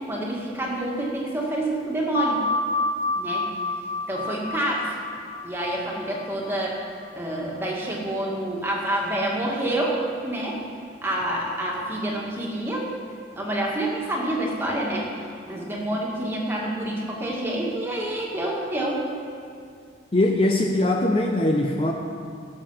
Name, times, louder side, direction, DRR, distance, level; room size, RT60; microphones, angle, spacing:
voice 1, 0.1-2.4 3.1-3.5 4.1-4.9 5.4-6.8 7.1-10.0 10.2-10.6 11.0-12.9 13.3-15.1 15.5-19.1, right 1 dB, 15° right, -3 dB, 1.9 m, -27 dB
sound 1, 2.1-7.3, left 2 dB, 50° left, 1.8 m, -29 dB
voice 2, 20.1-21.9, left 1 dB, 30° left, 2 dB, 0.6 m, -21 dB
17.5 x 6.8 x 5.7 m, 2.3 s
head